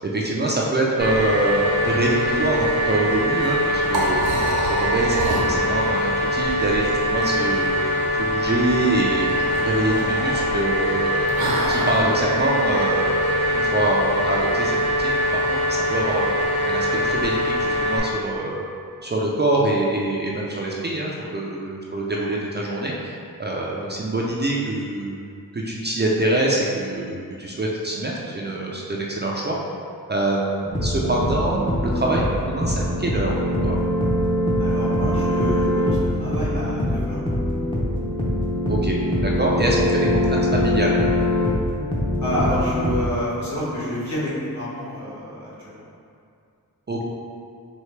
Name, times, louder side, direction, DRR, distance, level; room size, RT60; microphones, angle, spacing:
voice 1, 0.1-4.3 4.7-7.7 8.1-9.3 9.6-11.3 11.7-15.2 15.5-16.3 16.6-18.6 19.0-25.2 25.5-29.6 30.1-33.3 33.6-33.8 38.7-39.0 39.4-41.0 46.9-47.0, right 1 dB, 30° right, -4 dB, 0.4 m, -25 dB
sound 1, 1.0-18.0, equal, 85° left, 1.2 m, -23 dB
Liquid, 3.3-12.0, right 1 dB, 90° right, 0.9 m, -29 dB
sound 2, 30.7-43.0, left 1 dB, 15° left, 0.6 m, -23 dB
voice 2, 34.6-37.2 42.2-45.8, left 1 dB, 50° left, -8 dB, 1.4 m, -28 dB
4.4 x 2.8 x 3.2 m, 2.4 s
wide cardioid pair, 105°, 35 cm